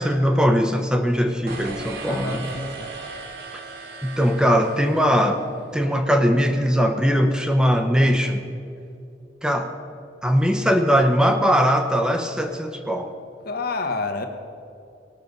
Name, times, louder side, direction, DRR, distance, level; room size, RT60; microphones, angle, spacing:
voice 1, 0.0-2.4 4.0-5.4 5.7-8.4 9.4-9.7 10.2-13.1, equal, 5° right, 5 dB, 0.6 m, -20 dB
sound 1, 1.5-5.7, right 3 dB, 55° right, 1.5 m, -37 dB
voice 2, 2.1-2.9 13.4-14.3, left 3 dB, 55° left, 6 dB, 1.1 m, -28 dB
18.0 x 6.6 x 5.3 m, 2.6 s
head